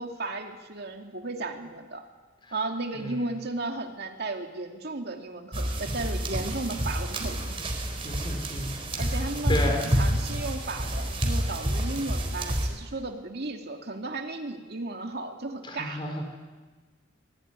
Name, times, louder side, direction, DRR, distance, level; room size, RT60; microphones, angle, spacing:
voice 1, 0.0-2.0 2.5-7.6 9.0-16.0, right 2 dB, 55° right, 3 dB, 2.4 m, -35 dB
voice 2, 3.0-3.3 8.0-9.2 9.5-10.0 15.7-16.3, left 1 dB, 25° left, 3 dB, 4.9 m, -32 dB
sound 1, 5.5-12.7, right 1 dB, 30° right, 4.3 m, -29 dB
26.0 x 21.0 x 9.7 m, 1.3 s
head